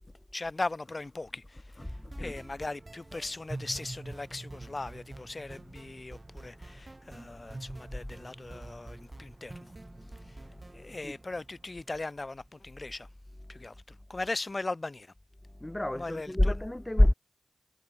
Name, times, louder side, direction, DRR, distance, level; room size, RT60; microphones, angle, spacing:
voice 1, 0.3-9.7 10.2-10.4 10.7-13.1 13.5-15.1 15.9-16.6, left 2 dB, 35° left, 7.9 m, -39 dB
sound 1, 1.8-12.7, right 2 dB, 30° right, 5.3 m, -46 dB
voice 2, 15.5-17.1, left 1 dB, 15° left, 5.1 m, -25 dB
cardioid pair, 45°, 0 cm